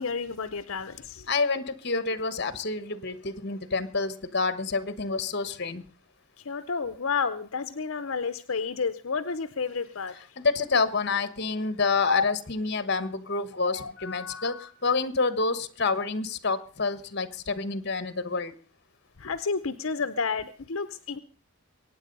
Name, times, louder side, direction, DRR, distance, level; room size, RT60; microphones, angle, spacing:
voice 1, 0.0-1.3 6.4-10.1 12.0-12.2 13.6-14.7 19.2-21.2, left 5 dB, 65° left, 11 dB, 0.7 m, -31 dB
voice 2, 1.3-5.8 10.4-14.5 14.8-18.5, left 4 dB, 50° left, 14 dB, 1.2 m, -28 dB
23.0 x 9.4 x 5.4 m, 0.40 s
head